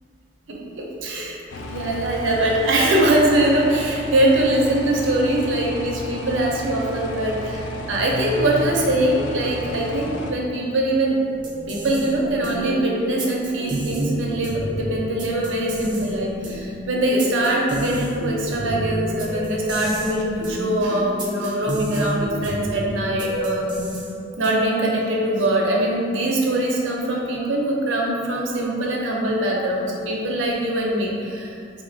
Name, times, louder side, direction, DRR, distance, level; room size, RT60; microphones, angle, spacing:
voice 1, 0.5-11.2 11.7-23.7 24.4-31.8, right 1 dB, 90° right, -2 dB, 0.6 m, -22 dB
sound 1, 1.5-10.3, left 1 dB, 80° left, 0.3 m, -32 dB
sound 2, 11.3-24.8, equal, 25° right, 0.5 m, -30 dB
4.2 x 2.6 x 2.6 m, 2.4 s
head